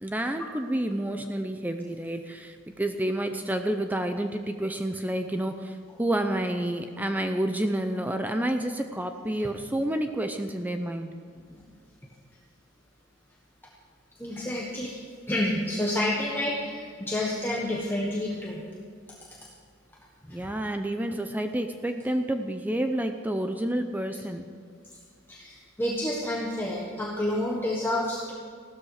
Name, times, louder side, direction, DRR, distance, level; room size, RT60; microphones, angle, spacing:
voice 1, 0.0-11.1 20.3-24.5, right 1 dB, 10° right, 6 dB, 0.6 m, -29 dB
voice 2, 14.2-15.0 15.3-18.7 20.3-20.4 25.3-28.3, left 1 dB, 10° left, -3 dB, 1.3 m, -29 dB
16.0 x 13.0 x 4.9 m, 2.2 s
head